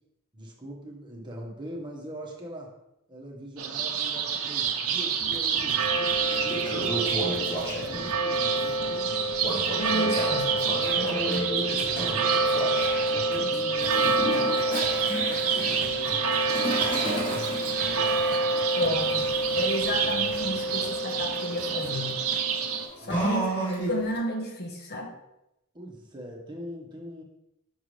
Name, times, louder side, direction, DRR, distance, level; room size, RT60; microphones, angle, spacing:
voice 1, 0.3-2.7 3.1-9.1 10.7-12.4 12.9-18.3 18.8-18.9 23.0-23.3 25.7-27.2, equal, 20° right, -1 dB, 1.2 m, -42 dB
sound 1, 3.6-22.9, right 4 dB, 75° right, 0.7 m, -27 dB
sound 2, 5.2-22.4, right 4 dB, 45° right, 0.5 m, -43 dB
Toilet flush, 5.7-5.8 6.2-8.1 9.4-13.0 13.8-24.2, right 1 dB, 25° left, 2.2 m, -33 dB
voice 2, 9.8-10.5 11.0-11.2 13.4-13.6 18.7-22.1 23.0-25.1, left 1 dB, 50° left, 2 dB, 1.0 m, -32 dB
6.3 x 5.9 x 3.2 m, 0.86 s
head